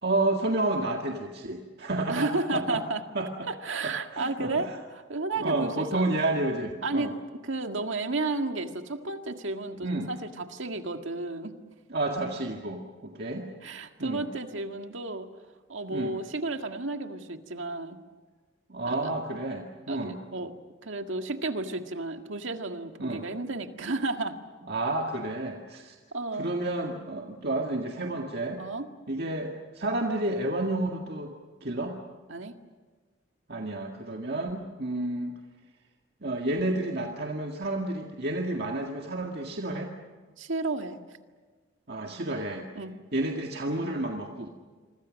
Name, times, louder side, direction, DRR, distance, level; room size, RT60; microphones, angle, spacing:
voice 1, 0.0-2.8 3.1-3.5 3.8-4.8 5.4-7.1 9.8-10.1 11.9-13.5 14.0-14.3 15.9-16.1 18.7-20.2 23.0-23.3 24.7-26.0 26.4-28.6 29.1-31.3 31.6-32.0 33.5-35.4 36.2-39.9 41.9-42.7 43.1-44.5, right 2 dB, 50° right, 1 dB, 1.9 m, -30 dB
voice 2, 2.1-3.0 3.5-4.7 4.9-6.0 6.8-7.1 7.4-11.6 13.6-15.3 15.7-18.0 18.9-19.1 19.9-20.5 20.8-24.4 26.1-26.5 28.6-28.9 32.3-32.6 40.4-41.0 42.8-42.9, right 2 dB, 75° right, 6 dB, 1.9 m, -32 dB
27.5 x 25.0 x 6.4 m, 1.4 s
head